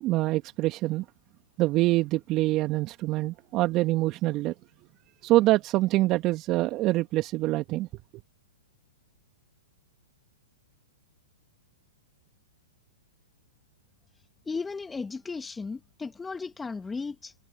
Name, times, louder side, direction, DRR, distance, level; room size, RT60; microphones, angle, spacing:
voice 1, 0.0-1.0 1.6-4.5 5.2-7.9, right 18 dB, 35° right, 2.0 m, -25 dB
voice 2, 14.5-17.3, left 4 dB, 10° left, 1.6 m, -35 dB
hypercardioid pair, 115°, 0 cm